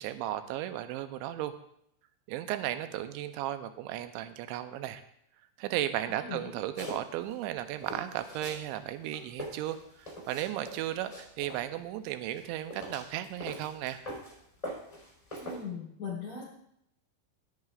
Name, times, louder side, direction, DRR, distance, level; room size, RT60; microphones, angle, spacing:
voice 1, 0.0-1.5 2.3-5.0 5.6-14.0, right 13 dB, 80° right, 9 dB, 2.9 m, -35 dB
voice 2, 6.1-6.6 15.4-16.5, left 5 dB, 45° left, -6 dB, 5.9 m, -39 dB
sound 1, 6.8-7.4 7.8-8.6 9.0-11.6 12.2-14.3 14.6-15.6, equal, 10° left, 4.1 m, -42 dB
17.5 x 10.5 x 2.5 m, 0.74 s
omnidirectional pair, 5.5 m